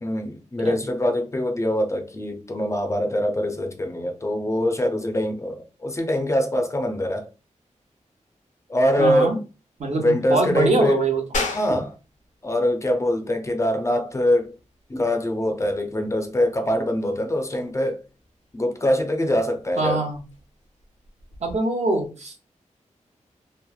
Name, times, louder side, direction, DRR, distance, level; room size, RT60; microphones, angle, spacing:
voice 1, 0.0-7.3 8.7-9.4 10.0-11.0 11.5-11.9 12.4-14.5 14.9-18.0 18.5-20.0, left 1 dB, 25° left, 0.4 m, -23 dB
voice 2, 9.0-9.4 9.8-11.2 11.7-11.8 19.8-20.2 21.4-22.5, right 3 dB, 60° right, 0.8 m, -23 dB
sound 1, 11.3-21.6, left 3 dB, 85° left, 0.6 m, -38 dB
3.0 x 2.0 x 2.2 m
wide cardioid pair, 110°, 13 cm